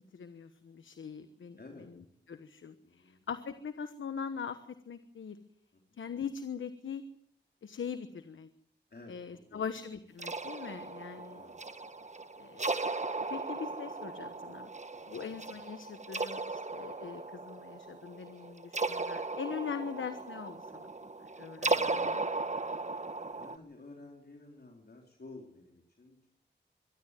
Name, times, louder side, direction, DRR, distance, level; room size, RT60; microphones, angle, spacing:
voice 1, 0.0-1.6 2.3-5.4 6.0-7.0 7.6-8.5 9.1-11.4 12.4-13.0 13.3-14.7 15.1-20.9 21.4-22.2, left 6 dB, 85° left, 10 dB, 1.2 m, -41 dB
voice 2, 1.6-1.9 2.8-3.2 5.7-6.0 8.9-9.6 11.2-11.6 12.1-12.3 14.9-15.3 23.3-26.3, left 2 dB, 55° left, 1 dB, 4.0 m, -53 dB
sound 1, 10.2-23.6, right 3 dB, 35° right, 1.5 m, -36 dB
24.0 x 12.5 x 9.2 m, 0.71 s
cardioid pair, 45°, 20 cm